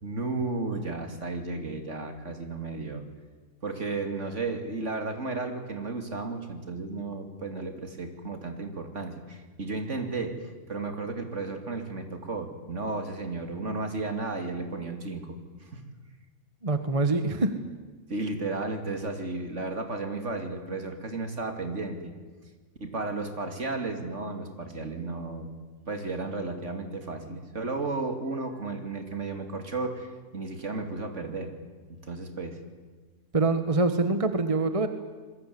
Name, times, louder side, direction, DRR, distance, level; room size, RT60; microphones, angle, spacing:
voice 1, 0.0-3.0 3.6-15.4 15.7-15.8 18.1-22.1 22.8-25.5 25.9-31.6 31.9-32.6, right 3 dB, 55° right, 6 dB, 3.0 m, -33 dB
voice 2, 16.6-17.5 33.3-34.9, right 3 dB, 25° right, 9 dB, 1.4 m, -24 dB
27.0 x 21.5 x 9.5 m, 1.4 s
omnidirectional pair, 1.5 m